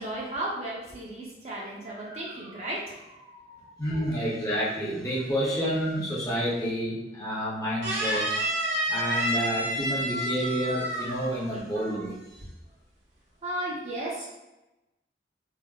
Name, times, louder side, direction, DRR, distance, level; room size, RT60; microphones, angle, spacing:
voice 1, 0.0-3.8 11.5-11.6 13.4-14.3, right 1 dB, 35° right, -4 dB, 0.5 m, -35 dB
voice 2, 3.8-8.4 8.9-12.1, equal, 20° left, -6 dB, 0.5 m, -29 dB
sound 1, 7.8-11.5 11.7-12.1, right 1 dB, 75° right, 0.7 m, -29 dB
3.5 x 2.0 x 2.2 m, 1.0 s
head